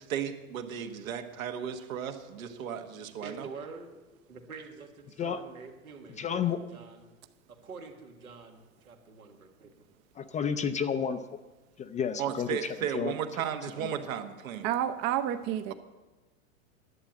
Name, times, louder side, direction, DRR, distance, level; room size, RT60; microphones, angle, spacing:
voice 1, 0.0-3.3 12.2-14.7, right 8 dB, 70° right, 7 dB, 1.4 m, -35 dB
voice 2, 3.2-3.9 4.3-7.1 7.5-9.7, right 4 dB, 90° right, 3 dB, 1.9 m, -46 dB
voice 3, 6.1-6.6 10.2-11.2 11.8-13.1 13.7-13.9, left 7 dB, 20° left, 10 dB, 0.4 m, -31 dB
voice 4, 14.6-15.7, right 11 dB, 40° right, 9 dB, 0.7 m, -29 dB
11.0 x 8.9 x 7.4 m, 1.2 s
hypercardioid pair, 100°, 42 cm